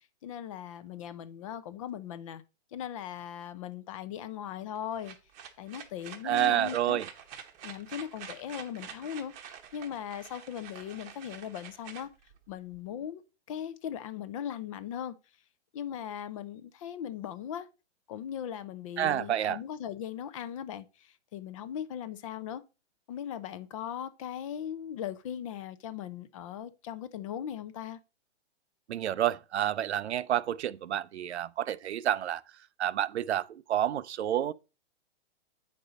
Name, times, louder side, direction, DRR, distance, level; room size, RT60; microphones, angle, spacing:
voice 1, 0.0-2.4 2.7-5.1 5.6-7.0 7.6-12.1 12.5-13.2 13.5-15.1 15.7-17.7 18.1-22.6 23.1-28.0, left 9 dB, 30° left, 0.5 m, -39 dB
sound 1, 4.8-12.8, right 8 dB, 20° right, 0.9 m, -47 dB
voice 2, 6.2-7.1 19.0-19.6 28.9-32.4 32.8-34.5, right 11 dB, 75° right, 0.6 m, -29 dB
8.0 x 5.4 x 4.0 m
hypercardioid pair, 145°, 34 cm